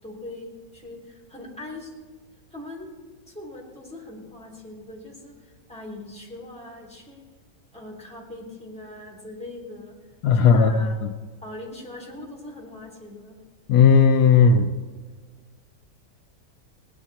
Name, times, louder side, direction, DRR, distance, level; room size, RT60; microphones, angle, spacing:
voice 1, 0.0-1.9 2.5-2.9 3.3-7.2 7.7-9.9 10.3-11.0 11.4-13.4, left 2 dB, 5° left, -4 dB, 3.6 m, -41 dB
voice 2, 10.2-11.1 13.7-14.7, left 5 dB, 75° left, 6 dB, 1.2 m, -16 dB
19.5 x 10.5 x 4.3 m, 1.5 s
omnidirectional pair, 1.8 m